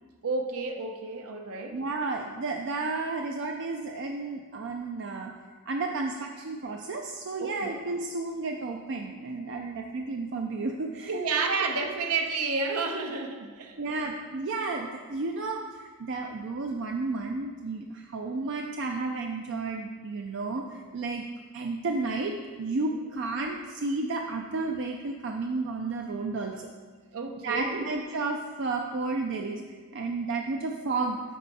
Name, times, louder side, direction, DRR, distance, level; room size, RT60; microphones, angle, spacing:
voice 1, 0.2-1.8 7.4-7.7 11.1-13.8 23.1-23.2 27.1-27.8, right 4 dB, 85° right, 4 dB, 0.7 m, -30 dB
voice 2, 1.7-5.3 5.7-11.4 13.8-21.2 21.5-22.3 22.6-26.7 27.4-29.6 29.9-31.2, right 3 dB, 55° right, 2 dB, 0.4 m, -32 dB
8.4 x 5.5 x 4.1 m, 1.5 s
head